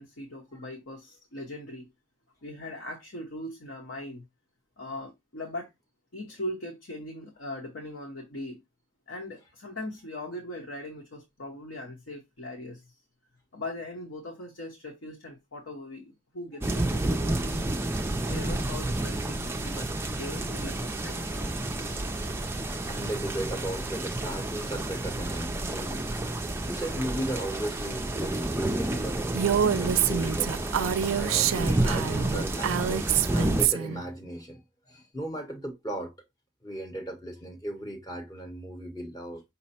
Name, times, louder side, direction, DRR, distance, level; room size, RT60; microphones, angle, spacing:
voice 1, 0.0-1.9 2.4-4.2 4.8-5.7 6.1-8.6 9.1-13.0 13.5-17.9 18.2-21.3, left 1 dB, 65° left, 1.0 m, -40 dB
sound 1, 16.6-33.7, right 1 dB, 10° right, 0.3 m, -30 dB
voice 2, 22.6-26.1 26.7-29.3 29.8-30.5 31.2-34.6 34.9-36.1 36.6-39.4, right 1 dB, 20° left, 0.8 m, -36 dB
Female speech woman speaking, 29.3-34.0, right 9 dB, 80° right, 0.4 m, -26 dB
5.5 x 2.1 x 4.2 m
head